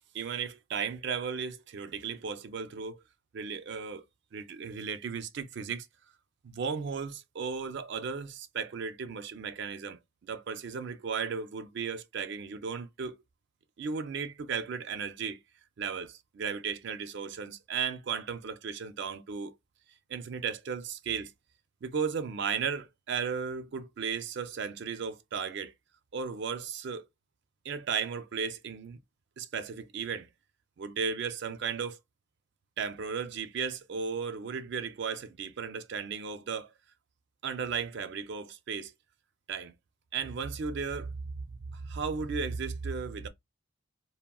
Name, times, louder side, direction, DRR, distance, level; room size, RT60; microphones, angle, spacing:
voice 1, 0.1-3.0 3.3-4.0 4.3-5.9 6.4-13.2 13.8-15.4 15.8-19.5 20.1-21.3 21.8-25.7 26.1-27.1 27.6-29.0 29.4-30.3 30.8-32.0 32.8-36.7 37.4-38.9 39.5-39.7 40.1-41.1 41.7-43.3, right 6 dB, 55° right, 0.4 m, -35 dB
3.5 x 2.0 x 2.3 m
head